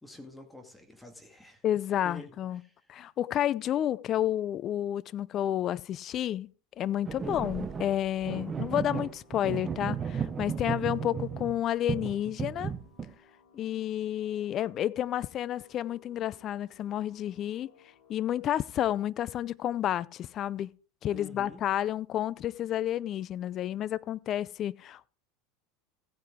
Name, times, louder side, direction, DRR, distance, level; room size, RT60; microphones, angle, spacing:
voice 1, 0.0-1.6 2.0-2.3 2.6-2.7 7.2-7.4 21.1-21.6, left 2 dB, 10° left, 2.1 m, -47 dB
voice 2, 1.6-2.6 2.9-6.5 6.8-12.7 13.5-17.7 18.1-20.7 21.0-25.1, left 11 dB, 45° left, 0.5 m, -30 dB
sound 1, 7.0-11.6 11.9-13.1, right 7 dB, 25° right, 0.9 m, -34 dB
sound 2, 7.6-18.4, left 4 dB, 85° left, 6.4 m, -62 dB
15.5 x 9.2 x 3.7 m
hypercardioid pair, 95°, 0 cm